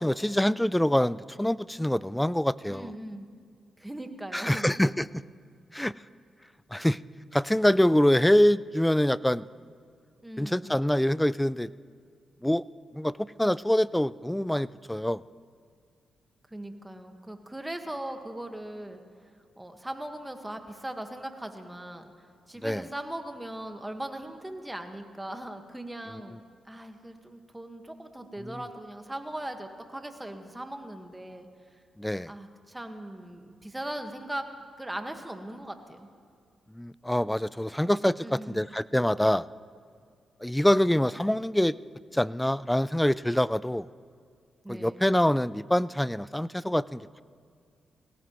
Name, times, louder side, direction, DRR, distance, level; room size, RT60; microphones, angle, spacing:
voice 1, 0.0-2.9 4.3-5.2 5.7-5.9 6.7-7.0 7.3-9.4 10.4-11.7 12.4-12.6 12.9-15.2 22.6-22.8 28.4-28.6 32.0-32.3 36.7-39.5 40.4-41.7 42.1-43.9 44.7-47.2, left 1 dB, 5° left, 19 dB, 0.4 m, -25 dB
voice 2, 2.7-3.3 3.8-4.7 10.2-10.7 16.5-19.0 19.6-26.4 26.6-31.5 32.3-34.5 34.8-36.1 38.2-38.7 44.6-45.1, right 1 dB, 15° right, 6 dB, 1.6 m, -39 dB
20.5 x 17.5 x 3.1 m, 2.3 s
supercardioid pair, 55°, 0 cm